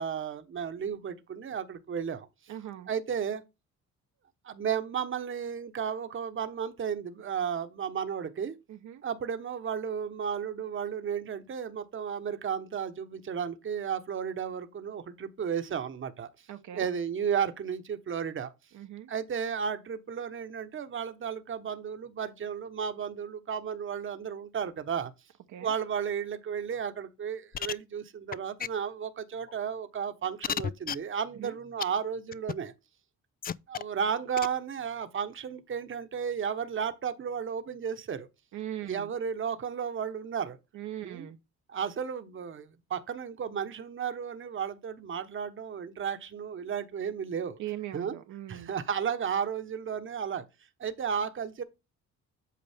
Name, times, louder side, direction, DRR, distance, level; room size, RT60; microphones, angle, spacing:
voice 1, 0.0-2.5 2.9-3.4 4.4-8.6 9.0-16.3 16.7-18.5 19.1-25.1 25.6-32.7 33.7-38.3 38.9-40.6 41.0-41.3 41.7-47.6 47.9-48.1 48.5-50.4 50.8-51.6, right 7 dB, 40° right, 1.1 m, -33 dB
voice 2, 2.5-2.9 8.7-9.0 16.5-16.9 18.7-19.1 25.5-25.7 31.4-31.5 38.5-39.1 40.7-41.4 47.6-48.7, right 12 dB, 75° right, 1.0 m, -40 dB
sound 1, 27.5-27.7 28.3-28.4 28.6-28.7 29.5-29.6 30.4-31.0 31.8-31.9 32.3-32.5 33.4-33.8 34.4-34.5, left 8 dB, 30° left, 0.4 m, -31 dB
8.5 x 5.2 x 3.5 m
cardioid pair, 90°, 30 cm